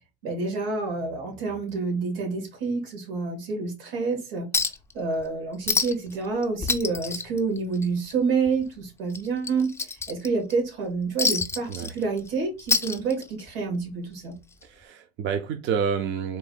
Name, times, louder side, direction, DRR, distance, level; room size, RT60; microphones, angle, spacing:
voice 1, 0.2-4.5 4.9-9.7 10.1-14.3, right 4 dB, 80° right, 2.5 m, -28 dB
Chink clink, 4.5-4.9 5.2-5.3 5.7-6.1 6.4-8.1 8.5-8.6 9.1-10.5 11.2-12.3 12.6-13.5 14.6-14.7, left 4 dB, 10° left, 0.5 m, -27 dB
voice 2, 14.6-16.4, right 7 dB, 40° right, 0.6 m, -28 dB
4.0 x 2.6 x 4.0 m
supercardioid pair, 115°, 29 cm